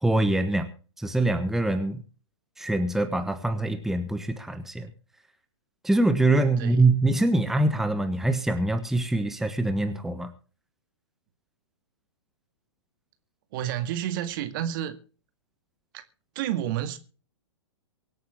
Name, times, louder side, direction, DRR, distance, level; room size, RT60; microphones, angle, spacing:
voice 1, 0.0-0.7 1.0-2.0 2.6-4.9 5.8-10.3, right 2 dB, ahead, 1.4 m, -24 dB
voice 2, 6.6-6.9 13.5-15.0 15.9-16.0 16.4-17.0, right 11 dB, 45° right, 2.0 m, -30 dB
24.5 x 8.8 x 3.6 m
figure-of-eight pair, 115°, 16 cm